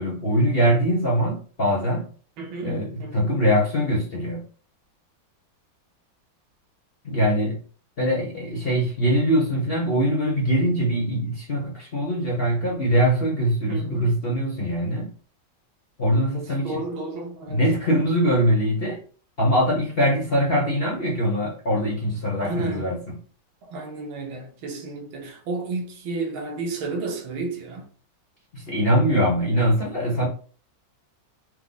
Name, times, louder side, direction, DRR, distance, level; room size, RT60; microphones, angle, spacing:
voice 1, 0.0-2.1 2.6-4.4 7.0-7.6 8.0-15.1 16.0-16.8 17.5-19.0 19.4-23.0 28.5-30.3, equal, 40° left, 1.0 m, -22 dB
voice 2, 2.4-3.4 13.7-14.2 16.3-17.6 22.4-22.9 23.6-27.9, right 3 dB, 80° right, 1.7 m, -32 dB
4.7 x 2.2 x 3.9 m
omnidirectional pair, 2.2 m